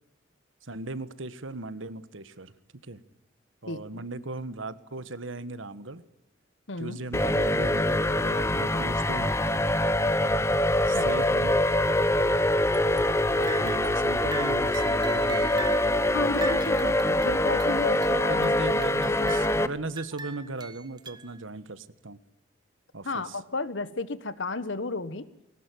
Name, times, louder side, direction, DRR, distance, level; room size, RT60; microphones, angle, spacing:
voice 1, 0.6-2.5 2.9-3.0 3.6-6.0 6.8-9.3 10.9-11.6 13.3-15.6 17.0-17.2 18.3-22.2 22.9-23.4, right 2 dB, 75° right, 14 dB, 1.4 m, -38 dB
voice 2, 3.6-4.1 6.7-7.0 8.5-8.8 10.9-11.2 16.1-17.0 17.2-18.5 23.0-25.3, left 3 dB, 70° left, 15 dB, 1.4 m, -33 dB
sound 1, 7.1-19.7, left 1 dB, 15° left, 0.8 m, -24 dB
sound 2, 12.7-13.2 13.4-14.1 14.3-15.9 16.3-18.4 18.8-19.7 20.0-21.4, right 3 dB, 20° right, 1.2 m, -40 dB
21.5 x 18.5 x 9.3 m, 0.88 s
head